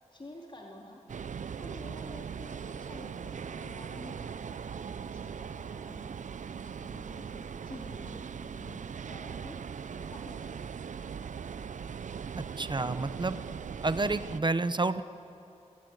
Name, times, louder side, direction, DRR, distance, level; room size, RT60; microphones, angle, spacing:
voice 1, 0.1-1.0 1.6-6.0 6.5-9.6 10.0-10.9, left 1 dB, 40° left, -1 dB, 3.1 m, -50 dB
sound 1, 1.1-14.4, right 6 dB, 85° right, 0.5 m, -40 dB
voice 2, 12.4-13.4 13.8-15.0, right 3 dB, 40° right, 13 dB, 0.8 m, -29 dB
30.0 x 18.0 x 8.1 m, 2.7 s
wide cardioid pair, 80°, 12 cm